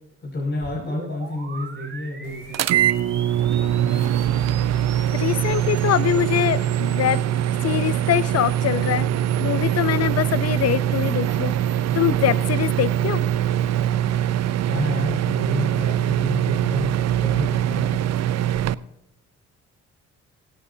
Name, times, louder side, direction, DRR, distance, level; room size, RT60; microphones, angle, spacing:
voice 1, 0.2-2.9 14.6-18.1, left 1 dB, 40° left, -4 dB, 6.6 m, -30 dB
sound 1, 0.6-13.9, right 4 dB, 35° right, 5.2 m, -43 dB
sound 2, 2.5-18.7, right 11 dB, 60° right, 0.6 m, -22 dB
voice 2, 5.1-7.2 7.6-9.1 9.4-11.5 11.9-13.2, left 12 dB, 55° left, 19 dB, 0.7 m, -23 dB
17.5 x 16.5 x 2.8 m, 0.88 s
supercardioid pair, 70°, 30 cm